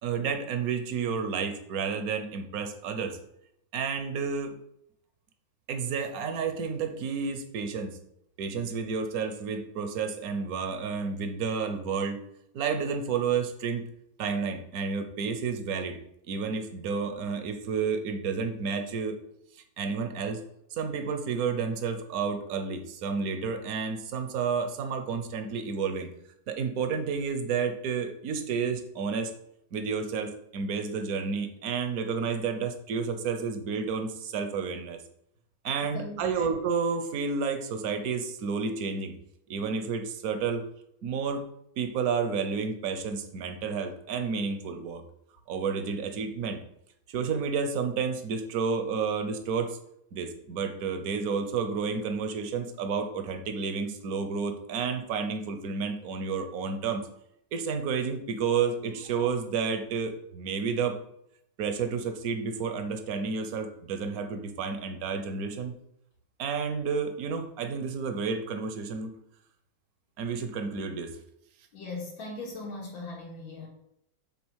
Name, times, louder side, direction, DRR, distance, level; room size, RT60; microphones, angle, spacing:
voice 1, 0.0-3.2 3.7-4.6 5.7-8.0 8.4-12.2 12.5-13.8 14.2-16.0 16.3-19.2 19.8-20.4 20.7-26.1 26.5-29.3 29.7-35.0 35.6-39.1 39.5-40.6 41.0-41.4 41.8-45.0 45.5-46.6 47.1-49.8 50.1-57.0 57.5-61.0 61.6-65.7 66.4-69.1 70.2-71.1, right 5 dB, 55° right, 7 dB, 1.2 m, -31 dB
voice 2, 35.8-36.5 71.7-73.7, left 3 dB, 80° left, -2 dB, 2.9 m, -39 dB
7.2 x 4.2 x 6.3 m, 0.75 s
omnidirectional pair, 2.1 m